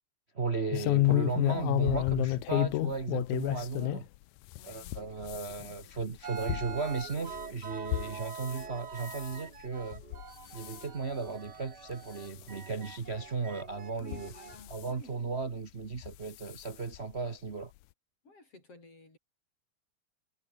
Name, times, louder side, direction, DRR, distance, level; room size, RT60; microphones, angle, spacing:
voice 1, 0.3-4.1 4.6-10.0 10.5-14.3 14.7-17.7, right 4 dB, 60° right, 0.6 m, -35 dB
sound 1, 0.7-4.1 4.5-8.6 9.0-9.4 9.9-10.3 10.5-10.8 11.5-11.6 11.9-12.0 13.1-13.2 14.0-14.8 16.0-16.2 16.5-16.6 16.9-17.0, left 18 dB, 85° left, 2.1 m, -31 dB
voice 2, 4.6-6.2 14.0-15.2 18.2-19.2, left 2 dB, 50° left, 8.6 m, -55 dB
sound 2, 6.2-14.6, right 6 dB, 40° right, 2.0 m, -45 dB
omnidirectional pair, 3.4 m